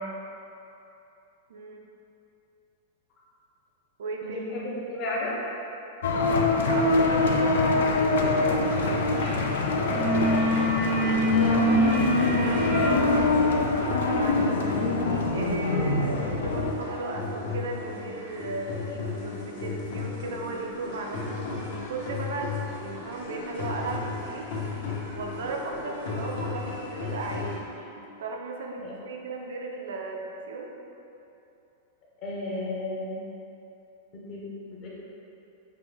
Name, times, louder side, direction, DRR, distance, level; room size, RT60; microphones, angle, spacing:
voice 1, 1.5-1.9 4.0-4.5 6.7-8.8 9.7-14.9 15.3-24.5 25.1-30.7, right 3 dB, 90° right, 1 dB, 0.5 m, -36 dB
voice 2, 4.2-5.4 28.8-28.9 32.2-33.2 34.1-34.9, left 2 dB, 30° left, -5 dB, 0.7 m, -33 dB
sound 1, 6.0-16.7, left 3 dB, 85° left, 0.4 m, -24 dB
sound 2, 8.6-27.6, left 4 dB, 65° left, 1.0 m, -35 dB
sound 3, 9.2-9.5 9.7-16.4, right 1 dB, 20° right, 0.4 m, -27 dB
5.8 x 2.2 x 3.3 m, 2.9 s
supercardioid pair, 170°, 0 cm